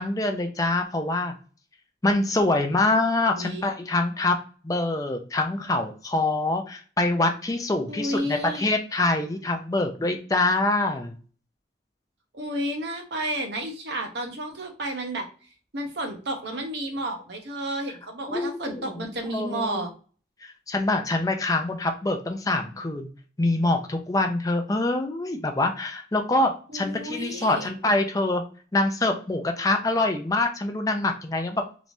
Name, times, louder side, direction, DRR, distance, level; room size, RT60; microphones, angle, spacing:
voice 1, 0.0-1.3 2.0-4.4 4.6-11.2 18.3-19.8 20.4-23.1 23.4-28.4 28.7-31.6, left 2 dB, 20° left, 4 dB, 0.4 m, -25 dB
voice 2, 3.4-3.7 7.9-8.7 12.3-15.3 15.7-19.9 26.7-27.7, right 1 dB, 65° right, 4 dB, 0.8 m, -31 dB
3.3 x 3.0 x 2.6 m, 0.39 s
head